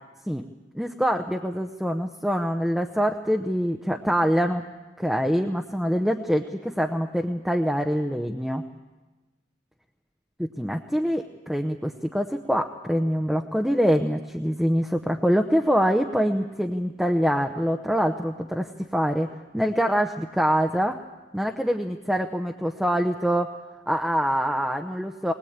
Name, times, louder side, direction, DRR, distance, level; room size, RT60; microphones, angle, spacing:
voice 1, 0.7-4.6 5.0-8.6 10.4-19.3 19.5-21.0 21.3-23.5 23.9-25.3, equal, ahead, 3 dB, 0.8 m, -24 dB
20.5 x 20.5 x 8.8 m, 1.2 s
head